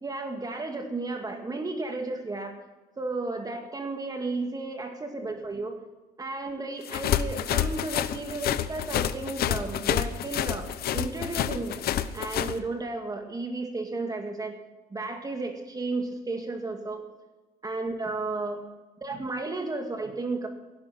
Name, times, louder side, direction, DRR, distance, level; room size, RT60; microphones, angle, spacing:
voice 1, 0.0-2.5 3.0-5.7 6.2-10.7 10.9-11.8 12.1-14.5 14.9-17.0 17.6-18.6 19.0-20.5, right 3 dB, 20° right, 4 dB, 2.1 m, -33 dB
sound 1, 6.9-12.6, left 11 dB, 65° left, 0.8 m, -28 dB
17.0 x 11.5 x 5.8 m, 1.1 s
cardioid pair, 110°, 17 cm